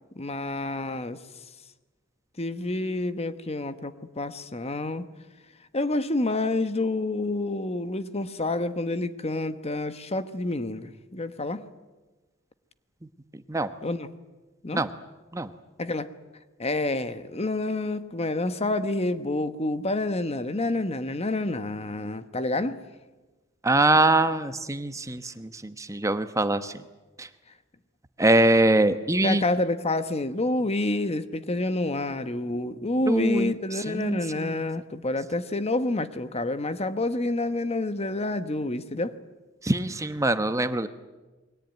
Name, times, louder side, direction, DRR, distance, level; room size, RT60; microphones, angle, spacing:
voice 1, 0.2-1.2 2.4-5.1 5.7-11.7 13.8-14.1 14.6-14.8 15.8-16.1 16.6-22.8 29.2-39.1, left 2 dB, 30° left, 1.1 m, -28 dB
voice 2, 23.6-26.7 27.2-27.3 28.2-29.4 33.1-34.6 39.6-40.9, right 2 dB, 15° right, 1.0 m, -23 dB
28.5 x 22.0 x 9.2 m
head